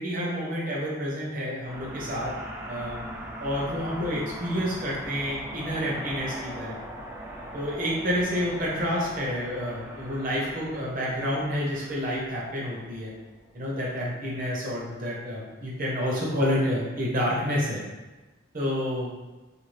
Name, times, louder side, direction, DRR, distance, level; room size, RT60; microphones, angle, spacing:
voice 1, 0.0-2.3 2.7-3.0 3.4-6.8 7.5-13.1 13.5-17.8 18.5-19.1, equal, 45° right, -5 dB, 0.8 m, -29 dB
sound 1, 1.7-14.3, right 1 dB, 15° right, 0.3 m, -41 dB
2.6 x 2.4 x 3.1 m, 1.2 s
head